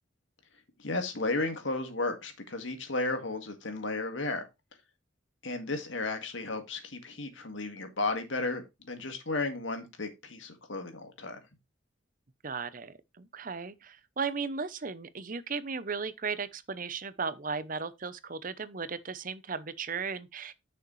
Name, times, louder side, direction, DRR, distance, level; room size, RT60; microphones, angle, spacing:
voice 1, 0.8-4.5 5.4-11.4, left 2 dB, 75° left, 1.9 m, -34 dB
voice 2, 12.4-20.5, right 5 dB, 45° right, 0.7 m, -36 dB
8.2 x 6.5 x 3.2 m
head